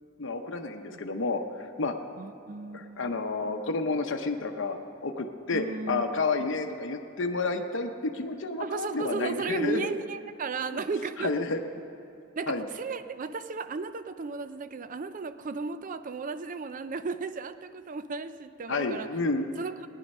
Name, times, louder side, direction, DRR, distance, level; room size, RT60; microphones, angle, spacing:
voice 1, 0.2-1.9 2.7-4.8 5.0-9.9 10.7-10.8 11.2-11.6 12.5-12.7 18.7-19.5, left 3 dB, 60° left, 5 dB, 0.8 m, -30 dB
voice 2, 2.2-3.1 5.5-6.0 8.6-11.3 12.4-19.1 19.6-19.9, right 4 dB, 40° right, 12 dB, 0.4 m, -35 dB
18.0 x 10.0 x 5.4 m, 2.5 s
head